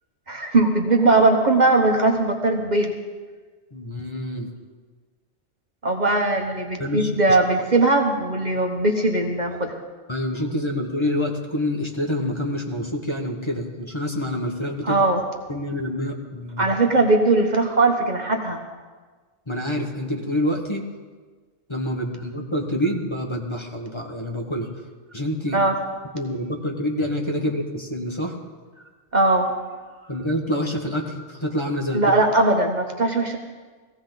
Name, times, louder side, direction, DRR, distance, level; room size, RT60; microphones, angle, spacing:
voice 1, 0.3-2.9 5.8-9.8 14.8-15.2 16.6-18.6 25.5-25.8 29.1-29.5 31.9-33.4, right 2 dB, 40° right, 2 dB, 1.3 m, -20 dB
voice 2, 3.7-4.5 6.8-7.1 10.1-15.0 15.5-16.7 19.5-20.8 21.7-24.7 25.1-25.6 26.1-28.4 30.1-32.1, left 1 dB, 25° left, 0 dB, 1.5 m, -27 dB
18.5 x 15.5 x 4.0 m, 1.4 s
omnidirectional pair, 1.2 m